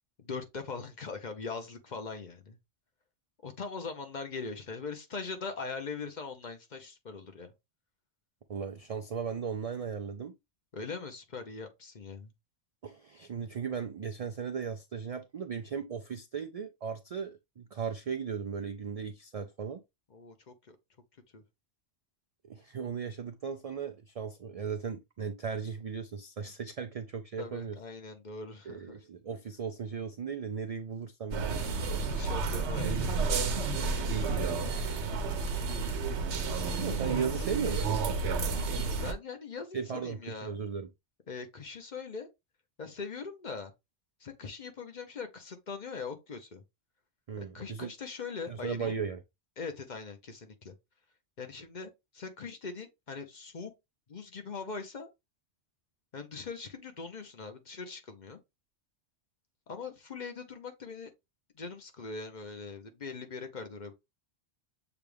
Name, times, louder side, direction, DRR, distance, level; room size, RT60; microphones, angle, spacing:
voice 1, 0.2-2.6 3.4-7.5 10.7-12.3 20.1-20.8 21.3-21.4 27.4-29.0 31.8-33.2 38.7-40.6 41.3-42.3 42.8-43.7 44.2-46.6 47.4-49.0 49.6-50.7 51.4-53.7 54.1-55.1 56.1-58.4 59.7-61.1 61.5-63.9, left 4 dB, 45° left, 0.8 m, -41 dB
voice 2, 8.5-10.4 12.8-19.8 22.4-27.8 28.7-31.6 36.4-38.0 39.7-40.9 47.3-47.9 48.5-49.2, right 6 dB, 65° right, 0.3 m, -37 dB
sound 1, 31.3-39.1, right 4 dB, 90° right, 1.0 m, -31 dB
6.9 x 2.3 x 3.3 m
omnidirectional pair, 1.1 m